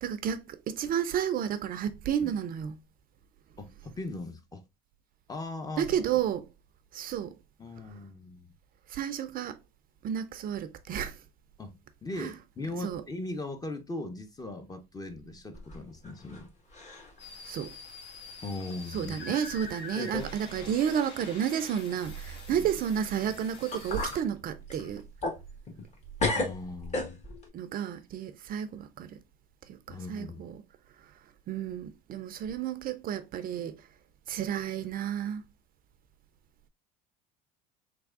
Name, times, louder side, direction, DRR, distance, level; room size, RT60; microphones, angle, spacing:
voice 1, 0.0-2.8 5.8-6.5 6.9-7.4 8.9-9.6 10.0-11.2 12.2-12.3 12.8-13.0 17.5-17.7 18.9-25.1 27.5-29.2 29.7-30.6 31.0-31.1 31.5-33.9 34.3-35.4, right 9 dB, 45° right, 0.4 m, -31 dB
voice 2, 3.6-4.6 5.3-5.9 7.6-8.5 11.6-16.5 18.4-19.2 22.5-22.7 26.3-27.2 29.9-30.4, left 2 dB, 20° left, 0.7 m, -39 dB
sound 1, 15.5-16.4 16.7-17.2 17.6-17.7 18.6-18.7 19.4-19.5 19.9-20.4 20.6-20.7 23.3-23.4 23.7-24.2 24.7-25.9 26.2-27.5, left 2 dB, 35° left, 1.4 m, -34 dB
sound 2, 17.2-24.2, left 4 dB, 60° left, 1.2 m, -46 dB
3.4 x 3.3 x 2.3 m
supercardioid pair, 85°, 20 cm